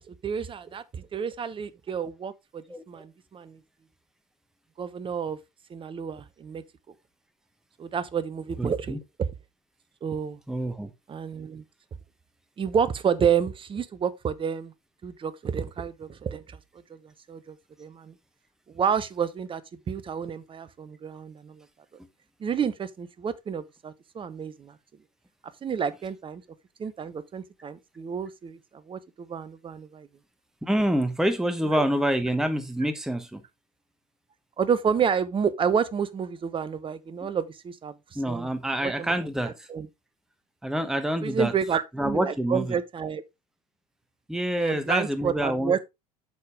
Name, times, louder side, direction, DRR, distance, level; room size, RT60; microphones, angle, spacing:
voice 1, 0.1-3.6 4.8-5.4 5.7-6.6 7.8-9.0 10.0-10.4 11.1-11.6 12.6-14.7 15.0-16.6 16.9-17.0 17.3-18.1 18.7-19.6 19.9-21.7 22.4-24.8 25.6-26.4 26.8-30.1 31.7-31.8 34.6-37.9 38.3-38.5 38.8-39.1 39.7-39.9 41.2-43.2 44.6-45.8, right 7 dB, 25° right, 0.9 m, -29 dB
voice 2, 8.6-9.0 10.5-10.9 30.6-33.4 37.2-37.3 38.1-39.7 40.6-41.5 41.9-42.8 44.3-45.8, right 1 dB, 5° right, 1.0 m, -27 dB
8.2 x 6.8 x 3.4 m
figure-of-eight pair, 65°, 19 cm